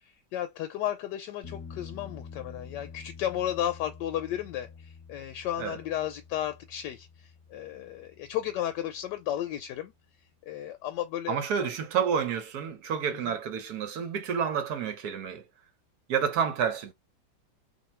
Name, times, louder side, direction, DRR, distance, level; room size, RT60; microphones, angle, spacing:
voice 1, 0.0-9.9 10.4-11.4 13.1-13.3, left 11 dB, 75° left, 1.1 m, -34 dB
sound 1, 1.4-9.0 12.1-12.2, left 5 dB, 20° left, 0.9 m, -48 dB
voice 2, 11.3-15.4 16.1-16.9, right 7 dB, 65° right, 1.1 m, -29 dB
2.7 x 2.7 x 4.2 m
omnidirectional pair, 2.1 m